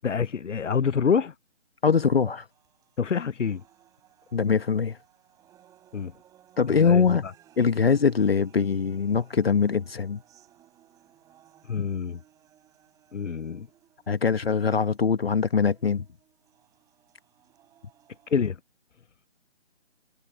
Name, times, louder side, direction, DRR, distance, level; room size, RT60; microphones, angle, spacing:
voice 1, 0.0-1.3 3.0-3.6 5.9-6.1 6.7-7.3 11.7-12.2 13.1-13.7 18.3-18.6, left 6 dB, 90° left, 0.6 m, -26 dB
voice 2, 1.8-2.5 4.3-5.0 6.6-7.2 7.6-10.2 11.8-11.9 14.1-16.0, left 6 dB, 55° left, 1.1 m, -22 dB
sound 1, 2.5-18.5, right 12 dB, 10° right, 6.0 m, -60 dB
figure-of-eight pair, 150°, 36 cm